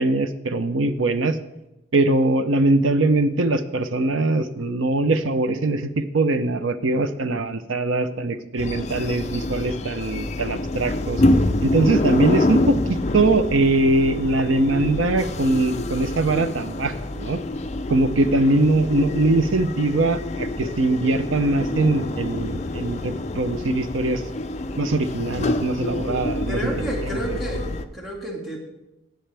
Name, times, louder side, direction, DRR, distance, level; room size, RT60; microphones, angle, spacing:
voice 1, 0.0-1.4 1.9-11.2 11.6-17.4 17.9-24.2 24.8-26.7 27.1-27.2, right 2 dB, 85° right, 11 dB, 0.7 m, -22 dB
sound 1, 8.6-27.9, left 2 dB, 35° left, 0.5 m, -27 dB
voice 2, 26.5-28.6, right 1 dB, ahead, -4 dB, 2.2 m, -30 dB
17.5 x 7.7 x 3.4 m, 0.94 s
head